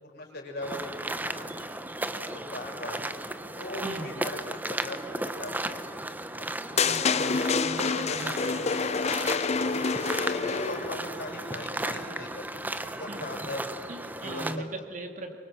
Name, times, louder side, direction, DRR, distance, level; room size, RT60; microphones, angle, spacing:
voice 1, 0.0-1.5 2.3-3.0 3.5-5.8 6.3-7.1 7.9-8.6 10.2-12.5 12.8-13.6 14.2-14.6, left 1 dB, 55° left, 0 dB, 6.4 m, -39 dB
sound 1, 0.6-14.6, right 1 dB, 10° right, 0.9 m, -35 dB
sound 2, 6.8-11.0, left 5 dB, 35° left, 0.6 m, -27 dB
voice 2, 6.8-7.3 7.6-8.8 13.1-13.5 13.9-15.4, right 1 dB, 40° right, 4 dB, 2.4 m, -39 dB
25.0 x 24.5 x 7.6 m, 2.2 s
head